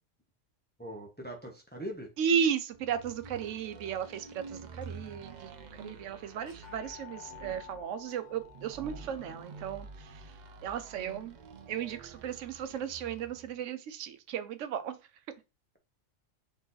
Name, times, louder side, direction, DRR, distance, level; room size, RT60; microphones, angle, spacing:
voice 1, 0.8-2.1, right 1 dB, 10° left, 0.7 m, -41 dB
voice 2, 2.2-10.1 10.6-11.4 11.7-15.0, right 8 dB, 85° right, 1.0 m, -35 dB
sound 1, 2.7-13.5, right 4 dB, 55° right, 0.5 m, -48 dB
sound 2, 4.8-5.3 5.7-5.8 6.4-12.3, left 14 dB, 80° left, 1.4 m, -54 dB
4.0 x 3.1 x 3.9 m
omnidirectional pair, 1.2 m